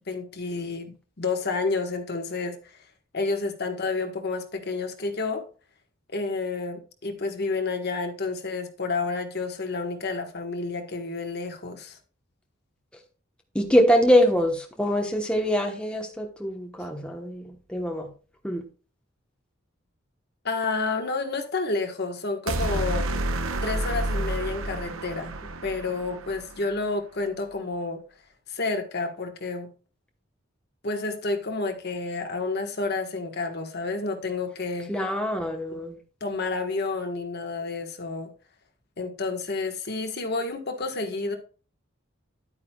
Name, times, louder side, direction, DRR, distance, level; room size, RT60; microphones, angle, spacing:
voice 1, 0.1-2.8 3.1-5.4 6.1-12.0 16.8-16.9 20.4-23.1 23.6-25.4 25.6-28.0 28.5-29.7 30.8-34.9 36.2-38.3 39.0-41.4, left 3 dB, 50° left, 5 dB, 1.4 m, -30 dB
voice 2, 13.5-18.1 18.4-18.6 34.9-36.0, equal, 5° left, 2 dB, 1.1 m, -24 dB
sound 1, 22.5-26.7, right 1 dB, 85° right, 0.9 m, -30 dB
10.5 x 8.9 x 2.3 m, 0.37 s
head